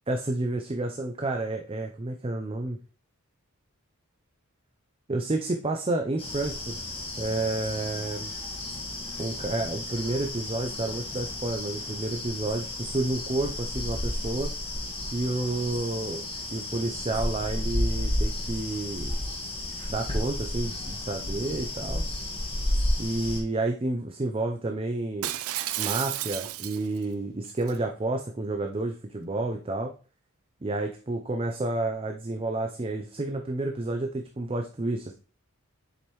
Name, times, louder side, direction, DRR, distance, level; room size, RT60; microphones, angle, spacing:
voice 1, 0.1-2.8 5.1-8.3 9.2-14.5 15.1-16.3 16.5-19.2 19.9-22.0 23.0-25.3 25.8-29.9 30.6-35.1, right 2 dB, 25° right, 4 dB, 0.5 m, -30 dB
sound 1, 6.2-23.4, left 1 dB, 25° left, 1.5 m, -32 dB
Shatter, 25.2-27.0 27.5-27.8, right 13 dB, 80° right, 0.4 m, -32 dB
7.2 x 5.1 x 3.1 m, 0.36 s
head